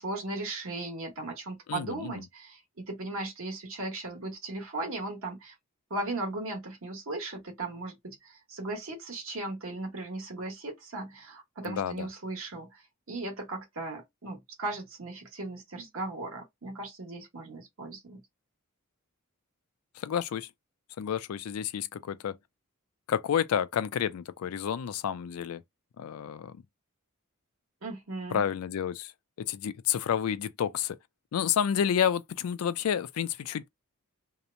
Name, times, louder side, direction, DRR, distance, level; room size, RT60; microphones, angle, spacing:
voice 1, 0.0-5.5 5.9-18.2 27.8-28.4, right 2 dB, 65° right, 1.1 m, -37 dB
voice 2, 1.7-2.1 11.6-12.1 19.9-20.5 21.0-22.4 23.1-25.6 26.0-26.6 28.3-29.1 29.4-31.0 31.3-33.7, left 8 dB, 75° left, 0.3 m, -30 dB
2.9 x 2.0 x 2.5 m
head